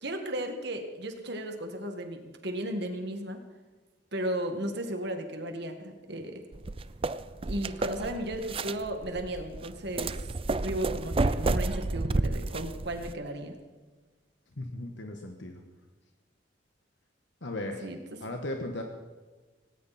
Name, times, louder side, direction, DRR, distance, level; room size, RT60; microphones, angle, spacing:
voice 1, 0.0-3.4 4.1-6.4 7.4-13.6 17.8-18.2, right 1 dB, 65° right, 5 dB, 2.1 m, -35 dB
sound 1, 6.5-13.1, right 2 dB, 30° right, 0.5 m, -31 dB
voice 2, 14.6-15.6 17.4-17.8 18.2-18.8, left 1 dB, 75° left, 3 dB, 1.5 m, -36 dB
18.5 x 17.5 x 4.4 m, 1.3 s
head